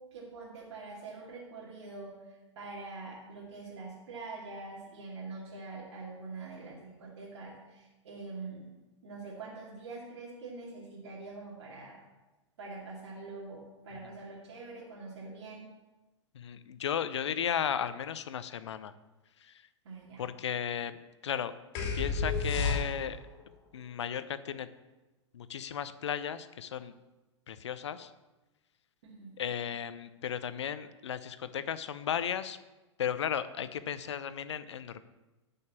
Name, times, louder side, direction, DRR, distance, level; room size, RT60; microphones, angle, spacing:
voice 1, 0.0-8.7 9.0-12.0 12.6-15.7 19.8-20.3 29.0-29.3, right 3 dB, 60° right, -5 dB, 2.4 m, -44 dB
voice 2, 16.3-18.9 20.2-20.9 21.2-21.5 21.9-23.2 23.7-24.7 25.3-26.9 27.5-28.1 29.4-32.6 33.0-35.0, left 8 dB, 65° left, 13 dB, 0.7 m, -35 dB
sound 1, 21.8-23.3, left 4 dB, 40° left, 2.7 m, -31 dB
10.5 x 5.5 x 7.0 m, 1.1 s
figure-of-eight pair, 100°, 16 cm